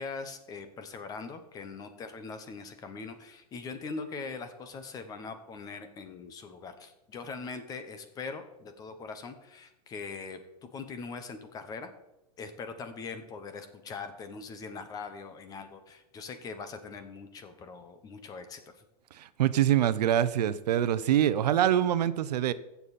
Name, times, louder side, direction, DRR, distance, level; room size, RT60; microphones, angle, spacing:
voice 1, 0.0-11.9 12.4-18.7, left 4 dB, 20° left, 9 dB, 1.0 m, -41 dB
voice 2, 19.2-22.5, right 11 dB, 90° right, 15 dB, 0.8 m, -25 dB
15.0 x 7.1 x 4.2 m, 0.92 s
supercardioid pair, 160°, 20 cm